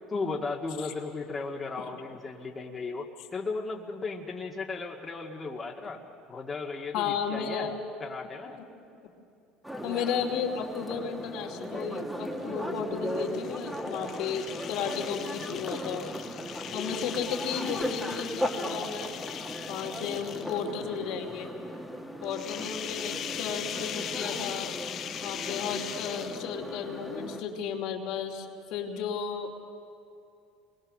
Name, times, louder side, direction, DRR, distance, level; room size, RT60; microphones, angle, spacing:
voice 1, 0.1-3.1 3.3-6.0 6.3-8.6, left 3 dB, 25° left, -1 dB, 2.1 m, -35 dB
voice 2, 6.9-7.8 9.8-16.1 16.7-19.1 19.7-21.5 22.2-24.7 25.2-29.6, left 7 dB, 70° left, 1 dB, 2.8 m, -34 dB
sound 1, 9.6-27.4, equal, 5° right, 2.3 m, -37 dB
sound 2, 13.1-20.8 22.2-26.7, left 9 dB, 50° left, 0.9 m, -39 dB
28.0 x 21.5 x 6.5 m, 2.7 s
supercardioid pair, 95°, 0 cm